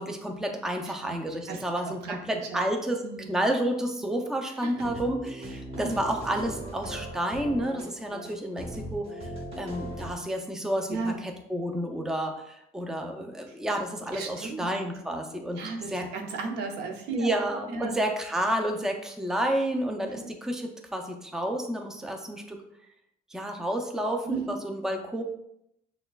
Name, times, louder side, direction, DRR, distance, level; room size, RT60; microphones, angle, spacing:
voice 1, 0.0-3.0 3.3-9.2 9.6-16.1 17.1-22.6 23.3-25.2, right 1 dB, 5° right, 3 dB, 0.4 m, -30 dB
voice 2, 0.9-1.2 1.5-2.2 2.5-2.6 3.0-3.3 4.6-4.9 5.8-6.0 10.9-11.2 14.1-14.7 15.6-17.3 17.7-18.0 20.0-20.3 24.2-24.5, right 4 dB, 85° right, 3 dB, 0.7 m, -35 dB
sound 1, 4.7-10.1, right 1 dB, 35° right, 1.0 m, -39 dB
6.2 x 2.3 x 2.3 m, 0.79 s
cardioid pair, 110°, 17 cm